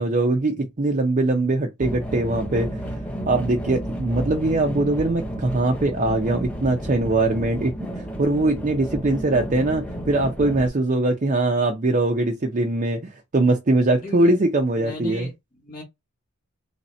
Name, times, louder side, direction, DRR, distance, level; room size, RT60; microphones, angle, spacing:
voice 1, 0.0-2.7 3.3-15.3, right 2 dB, 35° right, 0.5 m, -22 dB
sound 1, 1.8-10.7, right 1 dB, 5° left, 0.6 m, -32 dB
voice 2, 14.0-14.4 14.8-15.8, left 1 dB, 20° left, 1.0 m, -36 dB
3.2 x 2.7 x 4.2 m
head